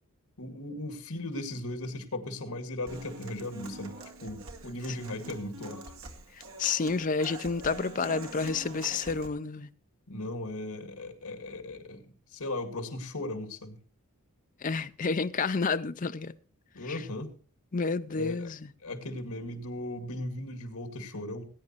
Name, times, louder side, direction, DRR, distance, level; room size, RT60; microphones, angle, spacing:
voice 1, 0.4-5.8 10.1-13.8 16.7-17.3 18.1-18.5 18.8-21.5, left 1 dB, 80° left, 2.1 m, -37 dB
Human voice / Acoustic guitar, 2.9-9.3, right 2 dB, 65° right, 2.0 m, -45 dB
voice 2, 6.3-9.7 14.6-16.4 16.8-17.0 17.7-18.7, left 4 dB, 35° left, 0.5 m, -30 dB
19.0 x 9.7 x 3.0 m
head